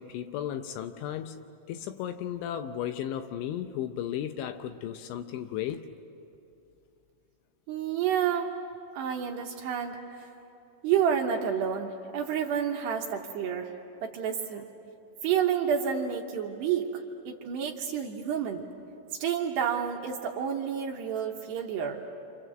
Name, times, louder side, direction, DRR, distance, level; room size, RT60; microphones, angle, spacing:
voice 1, 0.0-5.9, left 10 dB, 80° left, 2.9 m, -35 dB
voice 2, 7.7-8.5 8.9-10.3 10.8-13.7 14.0-14.7 15.2-18.7 19.2-22.0, right 8 dB, 75° right, 2.7 m, -29 dB
29.5 x 26.5 x 7.7 m
omnidirectional pair, 5.9 m